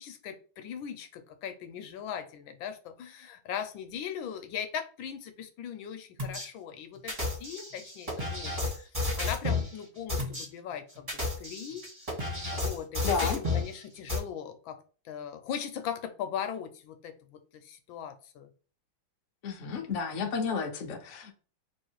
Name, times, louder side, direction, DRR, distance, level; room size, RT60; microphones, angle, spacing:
voice 1, 0.0-11.8 12.5-14.8 15.0-18.5, left 8 dB, 75° left, 8 dB, 1.3 m, -39 dB
sound 1, 6.2-6.5 7.1-9.7 10.1-10.4 11.0-13.7 14.1-14.2, left 3 dB, 20° right, 1.5 m, -31 dB
voice 2, 13.0-13.4 19.4-21.3, left 5 dB, 60° left, 2 dB, 0.7 m, -31 dB
3.5 x 3.1 x 4.5 m, 0.38 s
omnidirectional pair, 2.3 m